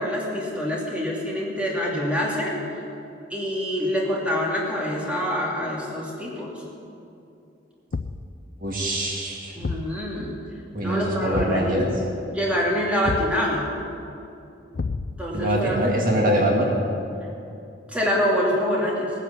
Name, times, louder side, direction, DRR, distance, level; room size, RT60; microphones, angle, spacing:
voice 1, 0.0-2.8 3.3-6.5 9.6-10.4 10.8-11.8 12.3-13.7 15.2-15.8 16.0-16.4 17.9-19.1, equal, 5° right, -4 dB, 2.6 m, -26 dB
Thump thud, 7.9-8.4 9.6-10.0 11.3-11.7 13.0-13.4 14.7-15.3, left 4 dB, 50° left, 0.4 m, -29 dB
voice 2, 8.6-9.6 10.7-11.9 15.3-16.7, right 1 dB, 45° right, -2 dB, 2.1 m, -23 dB
19.0 x 9.9 x 7.1 m, 2.7 s
head